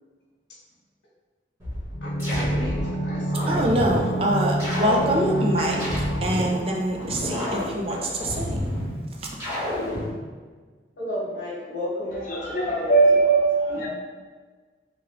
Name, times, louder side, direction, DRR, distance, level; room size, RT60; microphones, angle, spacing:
sound 1, 1.6-2.9 3.4-4.1 4.6-6.5 7.0-8.9 9.4-10.1, left 1 dB, 15° right, 1.2 m, -30 dB
sound 2, 1.9-7.6 7.9-8.0, right 1 dB, 70° left, 0.4 m, -28 dB
voice 1, 2.0-3.6 11.0-12.2 12.5-13.1, equal, 90° left, -9 dB, 1.0 m, -33 dB
voice 2, 3.5-8.7 9.2-9.3, right 1 dB, 30° right, -1 dB, 0.4 m, -25 dB
voice 3, 12.1-13.9, right 3 dB, 45° left, -5 dB, 0.8 m, -20 dB
3.6 x 2.3 x 3.2 m, 1.4 s
head